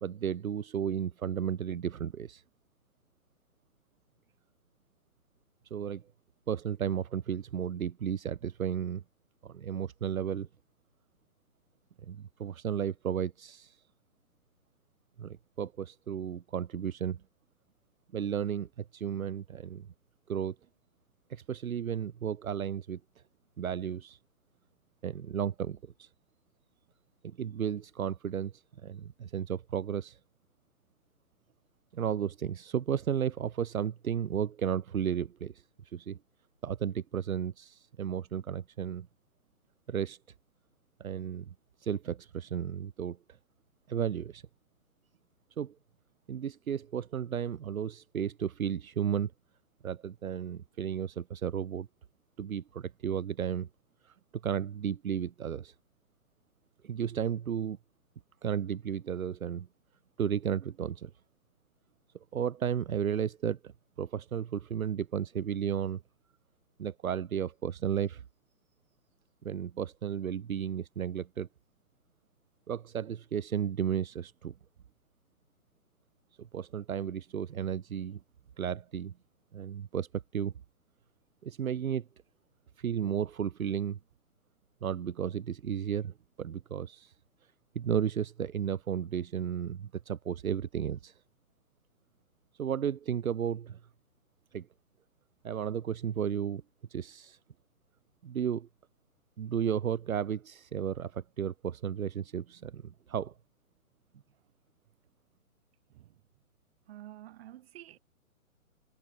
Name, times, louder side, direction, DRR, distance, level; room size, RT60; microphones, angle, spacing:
voice 1, 0.0-2.4 5.7-6.0 6.5-9.0 9.4-10.5 12.0-13.8 15.2-17.2 18.1-19.9 20.3-20.5 21.3-23.0 23.6-24.2 25.0-26.1 27.2-30.2 31.9-36.2 36.6-39.1 39.9-40.2 41.0-41.5 41.8-43.2 43.9-44.4 45.6-45.7 46.3-49.3 49.8-51.9 52.4-53.7 54.0-54.1 54.4-55.7 56.8-57.8 58.4-59.7 60.2-61.1 62.3-63.7 64.0-66.0 66.8-68.2 69.4-71.5 72.7-74.5 76.4-78.2 78.6-79.1 79.5-80.1 80.3-80.5 81.4-82.0 82.8-84.0 84.8-87.1 87.7-91.2 92.6-93.8 94.5-94.7 95.4-96.6 96.9-97.4 98.2-98.7 99.4-103.3, right 8 dB, 70° right, 1.3 m, -33 dB
voice 2, 105.9-106.2 106.9-108.0, right 13 dB, 45° right, 4.7 m, -49 dB
hypercardioid pair, 145°, 43 cm